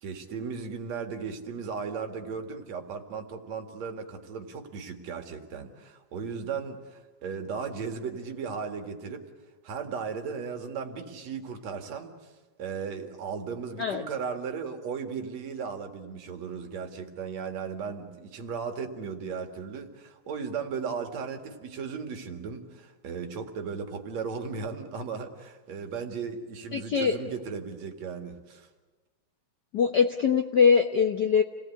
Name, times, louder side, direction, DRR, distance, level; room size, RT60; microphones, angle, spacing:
voice 1, 0.0-9.3 9.6-12.3 12.6-28.7, right 5 dB, 65° right, 5 dB, 3.1 m, -36 dB
voice 2, 26.7-27.2 29.7-31.4, left 6 dB, 70° left, 5 dB, 0.9 m, -22 dB
29.0 x 18.5 x 8.6 m, 1.3 s
omnidirectional pair, 3.3 m